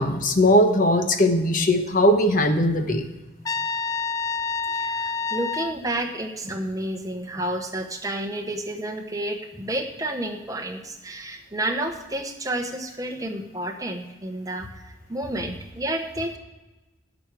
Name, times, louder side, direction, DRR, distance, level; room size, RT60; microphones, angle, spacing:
voice 1, 0.0-3.1, left 1 dB, 40° left, 6 dB, 1.0 m, -19 dB
Trumpet, 3.4-5.8, left 4 dB, 20° left, 0.4 m, -28 dB
voice 2, 4.7-16.4, right 1 dB, 15° right, 5 dB, 0.9 m, -30 dB
16.5 x 6.2 x 4.7 m, 1.1 s
head